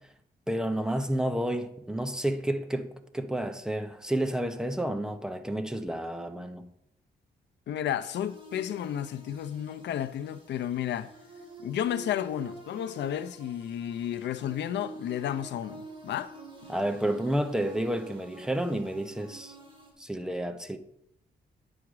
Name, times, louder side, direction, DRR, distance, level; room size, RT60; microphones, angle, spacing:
voice 1, 0.5-6.7 16.7-19.5 20.0-20.8, right 1 dB, 5° right, 0.5 m, -30 dB
voice 2, 7.7-11.1 11.6-16.3, left 10 dB, 90° left, 0.5 m, -32 dB
sound 1, 8.1-19.9, right 2 dB, 30° right, 1.8 m, -48 dB
9.6 x 4.9 x 4.7 m
wide cardioid pair, 160°, 18 cm